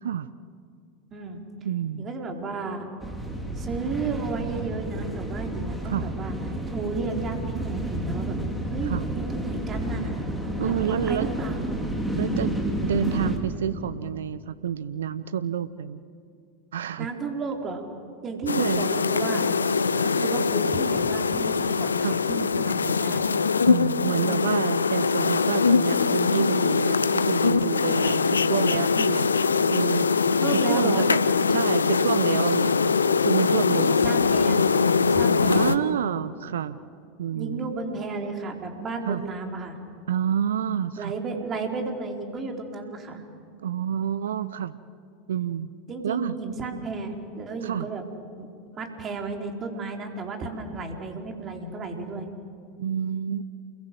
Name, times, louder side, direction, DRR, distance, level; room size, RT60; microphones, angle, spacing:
voice 1, 0.0-0.3 1.6-2.0 5.8-6.1 8.9-9.0 10.6-11.3 12.2-16.0 16.7-17.1 18.6-18.9 22.0-22.2 23.6-28.2 28.5-29.2 29.7-30.1 30.5-31.2 31.5-34.2 35.5-36.8 37.2-37.7 39.1-39.2 40.1-41.1 43.6-44.8 45.3-45.7 46.0-46.3 47.6-47.9 52.8-53.4, right 9 dB, 70° right, 15 dB, 0.7 m, -28 dB
voice 2, 1.1-1.4 2.0-2.9 3.5-6.4 6.7-8.4 8.6-10.2 10.6-11.8 17.0-17.9 18.2-23.3 24.2-24.5 28.0-28.2 28.9-29.1 30.4-31.1 33.7-35.8 37.3-39.8 41.0-43.2 45.9-48.0 48.4-48.5 48.7-52.3, right 4 dB, 30° right, 3 dB, 4.2 m, -33 dB
sound 1, 3.0-13.4, right 1 dB, ahead, 4.4 m, -30 dB
sound 2, 18.5-35.8, left 5 dB, 80° left, 0.7 m, -22 dB
29.0 x 22.0 x 7.8 m, 2.3 s
figure-of-eight pair, 85°, 0 cm